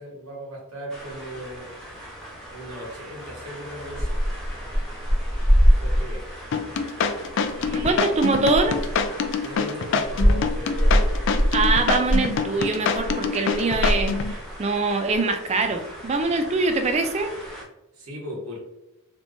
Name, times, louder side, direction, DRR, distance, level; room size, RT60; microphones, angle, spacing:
voice 1, 0.0-1.7 2.5-4.9 5.4-6.3 7.5-8.2 9.4-11.1 17.9-18.6, equal, 90° right, -4 dB, 1.5 m, -38 dB
sound 1, 0.9-17.6, equal, 5° left, 0.8 m, -26 dB
sound 2, 6.5-14.3, left 5 dB, 55° left, 0.3 m, -25 dB
voice 2, 7.7-8.8 11.5-14.2 14.6-17.4, right 3 dB, 30° right, 7 dB, 0.3 m, -23 dB
3.4 x 3.0 x 2.6 m, 0.94 s
head